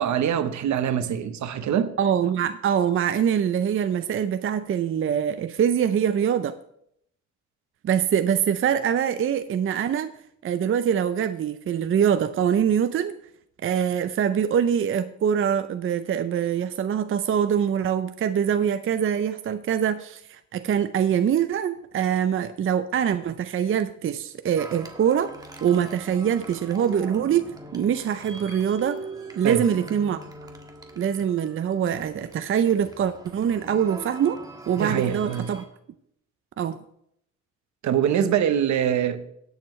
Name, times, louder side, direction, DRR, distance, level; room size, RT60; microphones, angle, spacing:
voice 1, 0.0-1.9 29.4-29.6 34.8-35.5 37.8-39.2, right 9 dB, 70° right, 1.0 m, -24 dB
voice 2, 2.0-6.5 7.8-10.1 10.4-13.1 13.6-25.3 25.6-27.5 27.7-29.0 29.4-30.2 31.0-34.4 34.7-35.6 36.6-36.8, right 8 dB, 45° right, 0.5 m, -24 dB
sound 1, 24.6-35.6, right 2 dB, 10° right, 1.6 m, -42 dB
17.5 x 7.1 x 3.2 m
cardioid pair, 90°, 30 cm